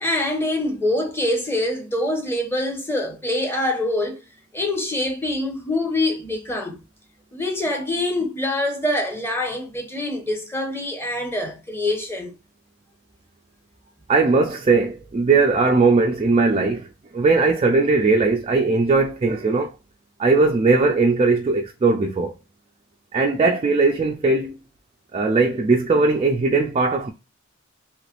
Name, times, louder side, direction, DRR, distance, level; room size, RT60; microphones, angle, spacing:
voice 1, 0.0-4.2 4.5-6.8 7.3-12.3, left 1 dB, 10° left, 0.8 m, -25 dB
voice 2, 14.1-16.9 17.1-19.7 20.2-22.3 23.1-24.6 25.1-27.1, right 3 dB, 30° right, 0.3 m, -19 dB
3.2 x 3.1 x 2.4 m
head